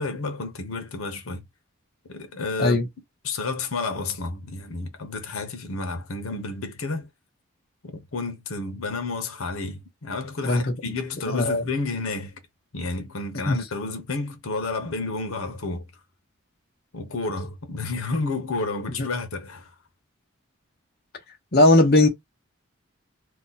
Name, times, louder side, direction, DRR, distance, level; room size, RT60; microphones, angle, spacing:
voice 1, 0.0-1.4 2.1-2.8 3.2-7.1 7.8-12.4 12.7-15.8 16.9-19.7, left 3 dB, 80° left, 0.8 m, -31 dB
voice 2, 11.3-11.6 13.5-13.6 19.0-19.1 21.5-22.1, left 2 dB, 45° left, 0.8 m, -18 dB
2.8 x 2.2 x 3.9 m
head